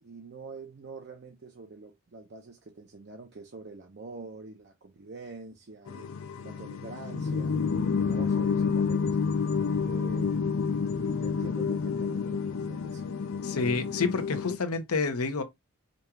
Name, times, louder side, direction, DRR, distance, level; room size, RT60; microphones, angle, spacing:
voice 1, 0.0-7.6 8.0-9.2 9.8-10.5 11.0-13.2, right 3 dB, 50° right, 0.5 m, -45 dB
sound 1, 5.9-14.6, left 5 dB, 65° left, 0.4 m, -29 dB
voice 2, 13.4-15.4, left 4 dB, 85° left, 0.8 m, -29 dB
5.1 x 2.4 x 2.8 m
head